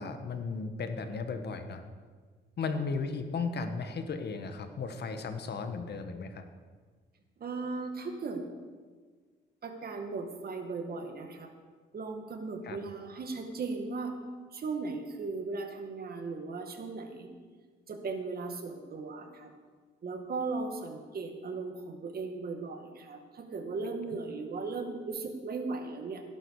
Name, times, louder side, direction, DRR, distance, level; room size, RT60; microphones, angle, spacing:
voice 1, 0.0-1.8 2.6-6.5 12.6-12.8, left 4 dB, 55° left, 8 dB, 1.5 m, -35 dB
voice 2, 7.4-8.4 9.6-11.5 11.9-14.2 14.5-17.3 17.9-19.5 20.0-26.2, right 4 dB, 50° right, 5 dB, 2.0 m, -37 dB
17.0 x 11.0 x 4.9 m, 1.5 s
cardioid pair, 90°, 20 cm